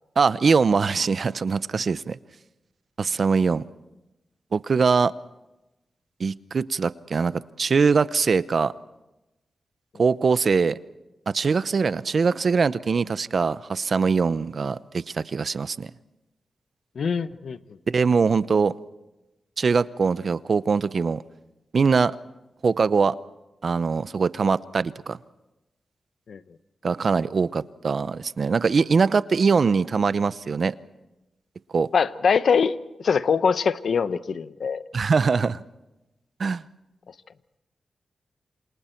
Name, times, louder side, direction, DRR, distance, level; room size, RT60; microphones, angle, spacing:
voice 1, 0.2-2.2 3.0-3.6 4.5-5.1 6.2-8.7 10.0-10.8 11.3-15.9 17.9-18.7 19.6-21.2 21.7-22.2 22.6-23.2 23.6-25.2 26.8-30.8 31.7-31.9 34.9-35.6 36.4-36.6, right 5 dB, 55° right, 16 dB, 0.7 m, -22 dB
voice 2, 17.0-17.6 26.3-26.4 31.9-34.8, left 6 dB, 70° left, 14 dB, 0.9 m, -23 dB
28.5 x 27.0 x 4.5 m, 0.97 s
cardioid pair, 80°, 0 cm